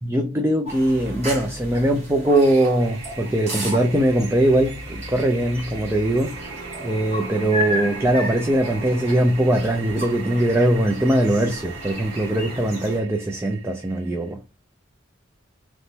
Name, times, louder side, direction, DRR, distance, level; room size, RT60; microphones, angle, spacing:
voice 1, 0.0-6.4 6.8-14.4, right 1 dB, 10° right, 0.4 m, -21 dB
sound 1, 0.7-13.0, equal, 35° right, 1.7 m, -34 dB
Toilet flush, 2.8-14.3, right 6 dB, 65° right, 1.4 m, -41 dB
4.0 x 3.1 x 3.4 m
head